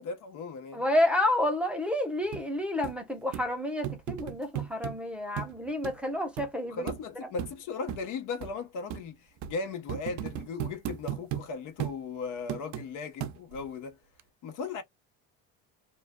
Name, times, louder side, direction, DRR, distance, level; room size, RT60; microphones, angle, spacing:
voice 1, 0.0-0.8 6.7-9.2 9.4-14.0 14.4-14.8, left 4 dB, 65° left, 1.0 m, -37 dB
voice 2, 0.7-6.9, left 1 dB, 5° right, 0.9 m, -29 dB
sound 1, 2.3-2.4 2.8-2.9 3.3-3.5 3.8-5.0 5.4-5.5 5.8-5.9 6.4-6.5 6.9-7.0 7.4-7.5 7.9-8.0 8.4-8.5 8.9-9.0 9.4-9.5 9.9-11.5 11.8-12.0 12.5-12.9 13.2-13.7 14.2-14.3, right 11 dB, 55° right, 0.5 m, -35 dB
2.5 x 2.2 x 2.2 m
supercardioid pair, 90°, 34 cm